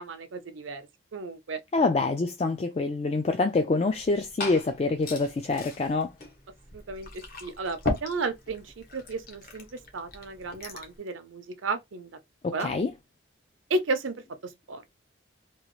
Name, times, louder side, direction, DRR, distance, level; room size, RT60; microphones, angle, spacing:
voice 1, 0.0-1.6 6.7-12.2 12.5-12.7 13.7-14.2 14.4-14.8, right 3 dB, 90° right, 0.6 m, -33 dB
voice 2, 1.7-6.1 12.4-12.9, left 3 dB, 35° left, 0.3 m, -26 dB
Liquid, 3.9-11.0, left 2 dB, 50° left, 0.8 m, -38 dB
3.0 x 2.3 x 3.0 m
head